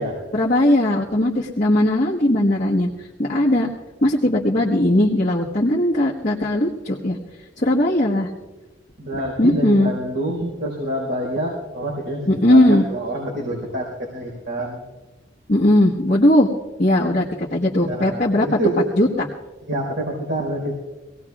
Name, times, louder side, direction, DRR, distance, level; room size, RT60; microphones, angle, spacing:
voice 1, 0.3-2.9 3.2-3.7 4.0-7.2 7.6-8.3 9.4-9.9 12.3-12.8 15.5-16.5 16.8-18.5 19.0-19.3, left 1 dB, 40° left, -4 dB, 1.3 m, -18 dB
voice 2, 9.0-14.8 17.7-18.9 19.7-20.8, right 1 dB, 85° right, -4 dB, 4.3 m, -27 dB
25.0 x 18.0 x 2.4 m, 1.2 s
head